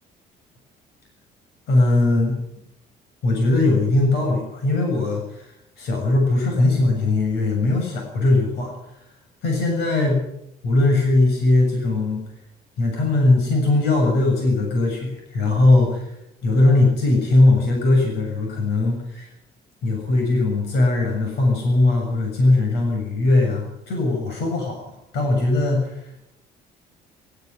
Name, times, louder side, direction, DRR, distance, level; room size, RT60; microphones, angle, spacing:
voice 1, 1.7-2.4 3.2-5.5 5.8-8.7 9.4-10.2 10.6-12.2 12.8-16.1 16.4-19.3 19.8-25.9, left 2 dB, 75° left, 1 dB, 7.3 m, -19 dB
18.0 x 15.0 x 9.7 m, 0.81 s
cardioid pair, 110°, 17 cm